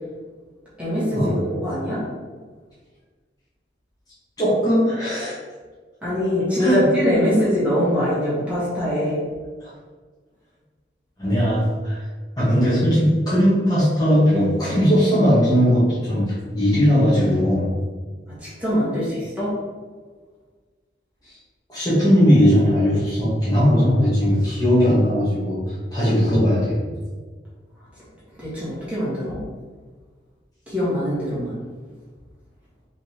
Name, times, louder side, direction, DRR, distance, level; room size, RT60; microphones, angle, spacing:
voice 1, 0.8-2.0 6.0-9.2 18.4-19.5 28.4-29.4 30.7-31.6, equal, 10° right, -10 dB, 1.5 m, -23 dB
voice 2, 4.4-5.4 6.6-6.8 9.6-9.7 11.2-12.0 12.4-17.7 21.7-25.6 25.9-26.8, equal, 20° left, -10 dB, 1.5 m, -18 dB
5.0 x 3.4 x 3.0 m, 1.5 s
head